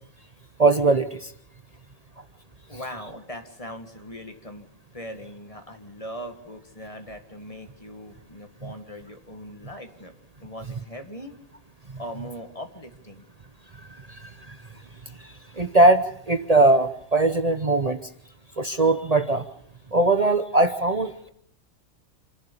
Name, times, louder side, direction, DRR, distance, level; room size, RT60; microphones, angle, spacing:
voice 1, 0.6-1.3 8.6-8.7 14.1-14.6 15.6-18.0 18.6-19.4 19.9-21.3, right 2 dB, 35° right, 9 dB, 0.9 m, -20 dB
voice 2, 2.7-4.7 4.9-10.1 10.4-11.4 12.0-13.3, equal, 25° left, 5 dB, 2.0 m, -40 dB
28.0 x 11.5 x 8.5 m, 0.70 s
omnidirectional pair, 1.3 m